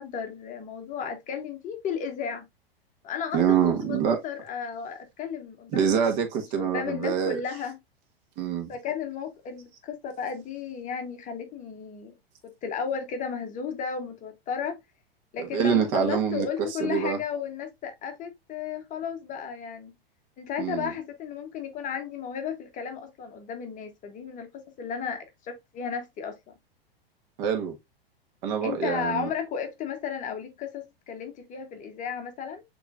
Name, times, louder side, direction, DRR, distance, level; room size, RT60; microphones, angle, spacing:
voice 1, 0.0-2.4 3.0-6.1 6.5-7.8 8.7-12.1 12.6-14.8 15.3-19.9 20.4-26.3 28.6-32.6, left 7 dB, 25° left, 0.8 m, -34 dB
voice 2, 3.3-4.2 5.7-7.4 8.4-8.7 15.4-16.5 16.8-17.2 20.6-20.9 27.4-27.7 28.4-29.3, right 7 dB, 45° right, 1.4 m, -25 dB
6.9 x 3.1 x 2.4 m
figure-of-eight pair, 100°, 30 cm